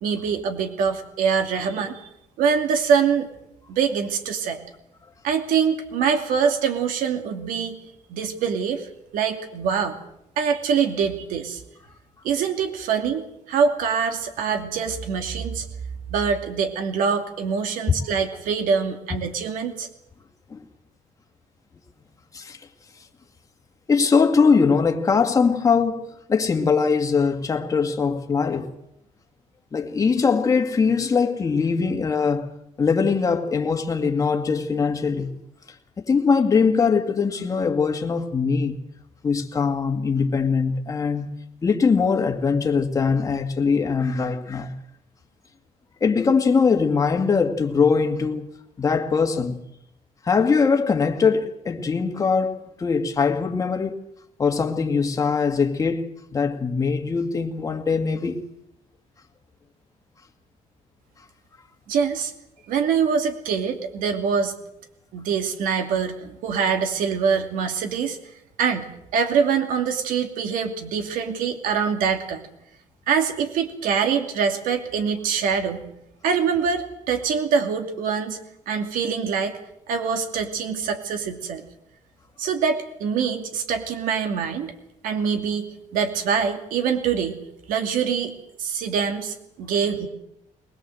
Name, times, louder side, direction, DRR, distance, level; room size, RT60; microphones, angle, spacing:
voice 1, 0.0-2.1 2.4-3.3 3.7-4.6 5.2-7.8 8.1-10.0 10.4-11.6 12.2-15.7 16.1-19.9 61.9-62.3 62.7-64.6 65.1-68.2 68.6-72.5 73.1-75.9 76.2-78.4 78.7-79.5 79.9-81.6 82.4-84.7 85.0-87.4 87.7-88.3 88.6-90.1, right 6 dB, 90° right, 2.7 m, -24 dB
voice 2, 23.9-28.7 29.7-32.5 32.8-35.3 36.0-38.8 39.2-41.3 41.6-44.7 46.0-48.5 48.8-49.6 50.2-54.0 54.4-58.4, left 5 dB, 25° left, 2.2 m, -21 dB
22.0 x 20.5 x 7.9 m
cardioid pair, 155°, 14 cm